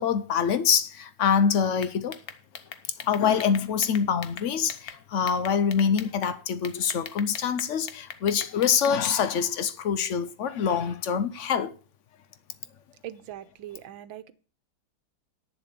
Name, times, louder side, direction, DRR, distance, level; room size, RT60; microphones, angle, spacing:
voice 1, 0.0-2.2 3.0-11.7, left 7 dB, 75° left, 0.6 m, -25 dB
sound 1, 1.8-5.0 5.3-6.3 6.6-9.2, left 8 dB, 55° left, 1.2 m, -40 dB
voice 2, 13.0-14.3, right 12 dB, 80° right, 1.6 m, -41 dB
10.0 x 7.2 x 6.7 m
omnidirectional pair, 2.1 m